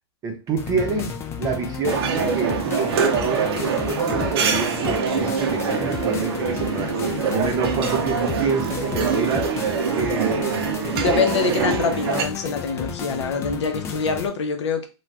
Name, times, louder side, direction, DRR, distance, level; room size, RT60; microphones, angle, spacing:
voice 1, 0.2-10.6 11.4-11.7, right 4 dB, 25° right, 0.7 m, -27 dB
sound 1, 0.6-14.3, left 7 dB, 15° left, 0.4 m, -32 dB
sound 2, 1.9-12.2, right 6 dB, 60° right, 0.6 m, -24 dB
voice 2, 10.7-14.9, left 5 dB, 70° left, 0.8 m, -25 dB
2.5 x 2.3 x 3.3 m
hypercardioid pair, 125°, 15 cm